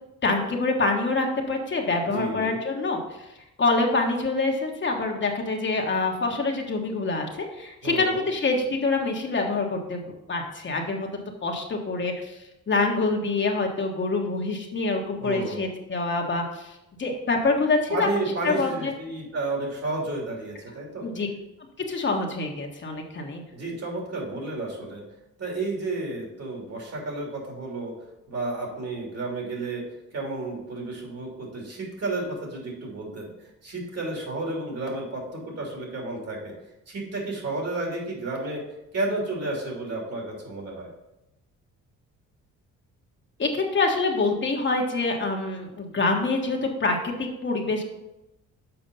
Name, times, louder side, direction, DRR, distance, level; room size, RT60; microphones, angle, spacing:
voice 1, 0.2-3.0 3.6-11.1 11.4-12.3 12.7-16.7 17.0-18.1 18.4-18.9 21.0-21.3 21.9-23.4 43.4-47.8, left 3 dB, 40° left, 1 dB, 1.3 m, -26 dB
voice 2, 2.0-2.6 7.8-8.2 15.2-15.6 17.9-21.1 23.5-25.0 25.4-27.9 28.3-29.8 30.1-33.3 33.6-36.5 36.9-38.6 38.9-40.9, right 2 dB, 55° right, -1 dB, 3.1 m, -31 dB
7.0 x 5.0 x 5.4 m, 0.91 s
cardioid pair, 90°, 30 cm